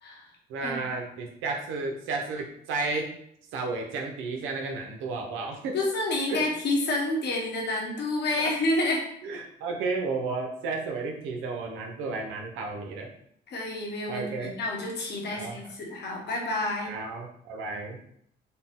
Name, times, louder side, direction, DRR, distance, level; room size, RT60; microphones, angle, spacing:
voice 1, 0.5-3.1 3.5-5.7 6.3-6.4 8.4-8.5 9.2-13.1 14.1-14.5 15.3-15.7 16.9-18.0, right 3 dB, 90° right, 1 dB, 0.6 m, -32 dB
voice 2, 5.7-9.0 13.5-17.0, left 2 dB, 60° left, -1 dB, 1.0 m, -29 dB
4.0 x 2.1 x 3.6 m, 0.69 s
cardioid pair, 90°, 20 cm